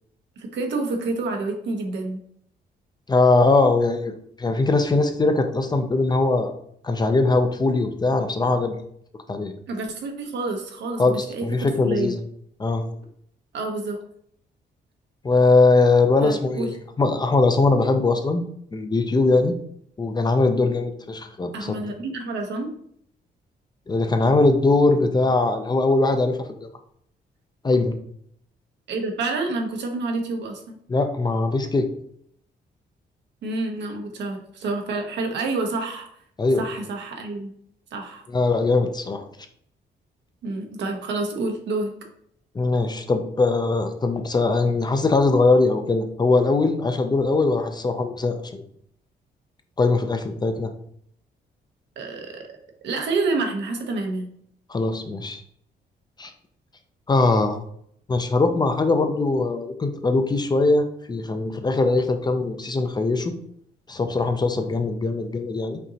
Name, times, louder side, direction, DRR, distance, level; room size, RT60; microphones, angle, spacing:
voice 1, 0.4-2.2 9.7-11.0 11.3-11.4 11.8-12.1 13.5-14.0 16.2-16.7 21.5-22.7 28.9-30.8 33.4-36.1 36.6-37.5 37.9-38.2 40.4-41.9 52.0-52.4 52.8-54.3, right 3 dB, 80° right, 3 dB, 0.9 m, -28 dB
voice 2, 3.1-4.1 4.4-6.6 6.8-8.7 9.3-9.5 11.0-12.2 12.6-12.8 15.2-18.4 18.7-19.5 20.0-21.8 23.9-26.7 27.6-28.0 30.9-31.9 36.4-36.7 38.3-39.2 42.5-48.6 49.8-50.7 54.7-55.4 56.2-56.3 57.1-57.6 58.1-63.3 63.9-65.8, left 3 dB, 25° left, 7 dB, 0.5 m, -21 dB
5.2 x 2.8 x 2.8 m, 0.67 s
cardioid pair, 95°, 18 cm